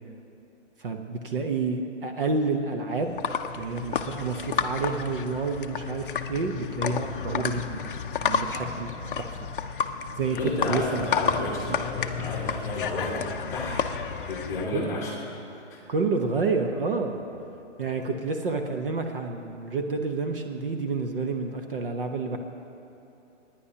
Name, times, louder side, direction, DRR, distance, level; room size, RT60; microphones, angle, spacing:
voice 1, 0.8-3.1 3.6-7.9 8.2-9.5 10.2-10.4 10.6-10.8 11.7-11.8 12.2-12.3 14.7-15.1 15.9-17.2 17.8-22.4, right 4 dB, 45° right, 4 dB, 0.8 m, -29 dB
sound 1, 3.0-14.7, left 7 dB, 45° left, 0.5 m, -31 dB
voice 2, 10.3-13.2 13.5-15.8, left 2 dB, 10° left, -4 dB, 1.2 m, -32 dB
29.5 x 10.0 x 2.8 m, 2.8 s
hypercardioid pair, 165°, 37 cm